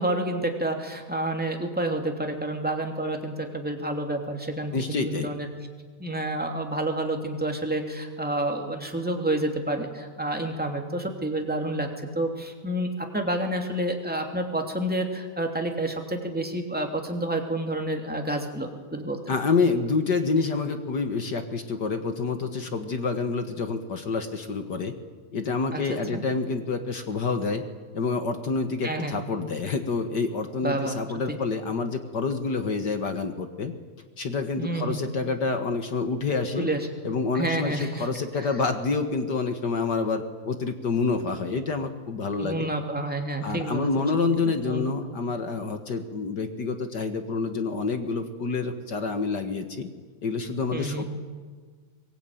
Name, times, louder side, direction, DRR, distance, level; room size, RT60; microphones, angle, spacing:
voice 1, 0.0-5.5 6.0-11.9 12.1-19.3 25.7-25.8 26.1-26.2 28.8-29.1 30.6-31.0 31.3-31.4 34.6-35.0 36.6-36.8 37.3-38.1 38.4-38.5 42.4-44.1 44.4-44.9 50.7-51.0, right 1 dB, 5° right, 2 dB, 2.5 m, -29 dB
voice 2, 4.7-5.3 19.3-24.9 25.3-27.6 27.9-33.7 34.2-36.7 37.0-42.7 43.4-49.9 50.2-51.0, left 4 dB, 45° left, 7 dB, 1.4 m, -28 dB
23.5 x 21.5 x 9.2 m, 1.5 s
omnidirectional pair, 3.7 m